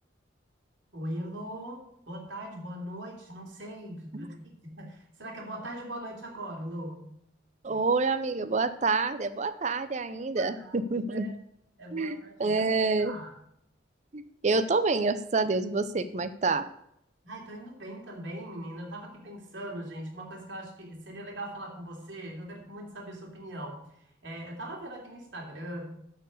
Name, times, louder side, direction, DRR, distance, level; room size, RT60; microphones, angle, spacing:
voice 1, 0.9-7.1 10.2-11.3 11.8-12.7 13.0-13.4 17.2-25.9, right 1 dB, 75° right, -1 dB, 3.0 m, -40 dB
voice 2, 7.6-11.3 11.9-13.1 14.1-16.6, right 3 dB, 40° right, 11 dB, 0.5 m, -27 dB
12.5 x 4.7 x 6.5 m, 0.74 s
head